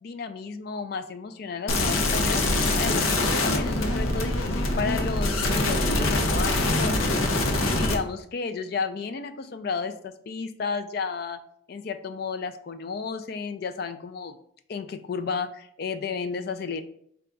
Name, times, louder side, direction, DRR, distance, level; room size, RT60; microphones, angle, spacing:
voice 1, 0.0-7.4 7.7-11.4 11.7-14.4 14.7-16.8, left 5 dB, 50° left, 9 dB, 0.3 m, -32 dB
sound 1, 1.7-7.9, left 2 dB, 85° left, 0.7 m, -24 dB
4.5 x 2.3 x 3.8 m, 0.68 s
head